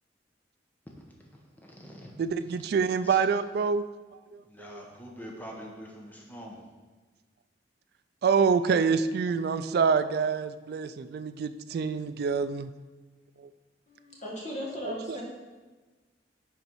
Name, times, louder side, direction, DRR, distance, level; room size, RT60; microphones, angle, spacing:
voice 1, 0.9-2.1 3.0-3.2 4.5-6.6, equal, 10° left, -1 dB, 1.0 m, -45 dB
voice 2, 2.2-3.8 4.1-4.8 8.2-12.7 13.4-13.5 14.8-15.2, right 5 dB, 60° right, 12 dB, 0.3 m, -27 dB
voice 3, 13.9-15.2, left 1 dB, 40° left, -3 dB, 1.8 m, -37 dB
10.5 x 4.1 x 4.6 m, 1.3 s
head